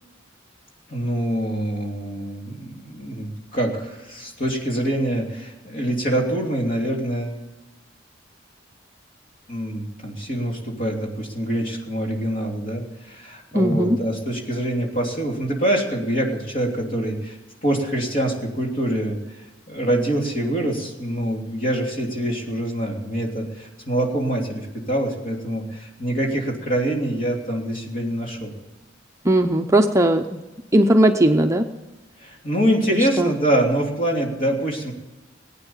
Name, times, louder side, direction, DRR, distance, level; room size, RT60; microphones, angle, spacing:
voice 1, 0.9-7.4 9.5-28.5 32.2-34.9, right 1 dB, 45° left, 0 dB, 3.1 m, -25 dB
voice 2, 13.5-14.0 29.2-30.2 30.7-31.6 33.2-33.3, right 1 dB, 15° right, 5 dB, 0.6 m, -17 dB
19.5 x 9.2 x 7.3 m, 1.1 s
head